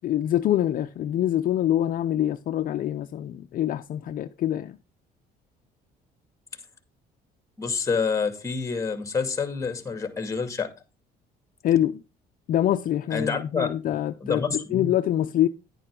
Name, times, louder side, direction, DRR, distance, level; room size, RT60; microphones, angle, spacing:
voice 1, 0.0-4.8 11.6-12.0 12.5-15.5, left 12 dB, 55° left, 0.6 m, -25 dB
voice 2, 7.6-10.7 13.1-13.7 14.2-14.9, left 5 dB, 20° left, 2.4 m, -27 dB
10.5 x 9.1 x 3.8 m
cardioid pair, 110°, 17 cm